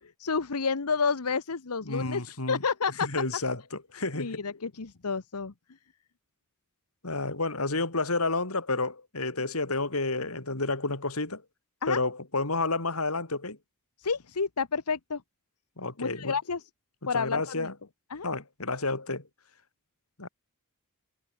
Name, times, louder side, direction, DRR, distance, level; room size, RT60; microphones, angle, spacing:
voice 1, 0.0-3.1 4.1-5.5 11.8-12.0 14.0-15.2 16.0-16.6 17.1-17.7 18.1-18.3, left 5 dB, 85° left, 1.0 m, -30 dB
voice 2, 1.8-2.6 3.0-4.4 7.0-11.4 11.9-13.6 15.8-16.3 17.1-17.7 18.2-19.3 20.2-20.3, left 3 dB, 70° left, 3.9 m, -30 dB
head